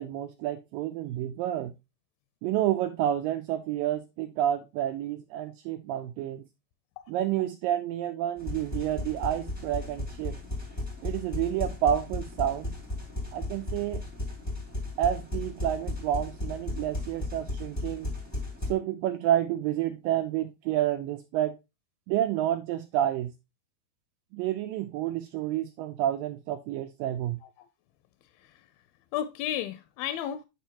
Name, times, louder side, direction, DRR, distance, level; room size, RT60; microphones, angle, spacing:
voice 1, 0.0-1.7 2.4-6.4 7.1-10.4 11.0-12.7 13.3-14.0 15.0-18.1 18.7-21.6 22.1-23.3 24.3-27.4, right 11 dB, 80° right, 2.0 m, -29 dB
sound 1, 8.4-18.7, left 2 dB, 15° left, 0.5 m, -35 dB
voice 2, 28.3-28.7 29.1-30.5, left 10 dB, 80° left, 2.2 m, -34 dB
8.6 x 5.2 x 2.8 m
omnidirectional pair, 4.6 m